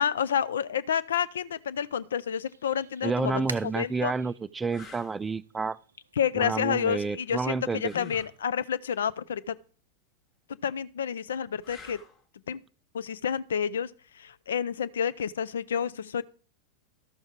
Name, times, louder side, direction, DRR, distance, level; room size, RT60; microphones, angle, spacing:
voice 1, 0.0-3.4 3.8-4.1 6.2-9.5 10.6-12.0 12.5-12.6 12.9-13.9 14.2-16.2, left 8 dB, 65° left, 0.4 m, -29 dB
sound 1, 1.5-6.8, right 5 dB, 75° right, 0.5 m, -48 dB
voice 2, 3.0-5.8 6.3-7.9, right 4 dB, 15° right, 0.3 m, -30 dB
sound 2, 4.7-5.2 7.8-8.4 11.6-12.2 15.2-15.4, left 6 dB, 30° left, 1.1 m, -46 dB
13.0 x 6.3 x 3.5 m
figure-of-eight pair, 90°, 0 cm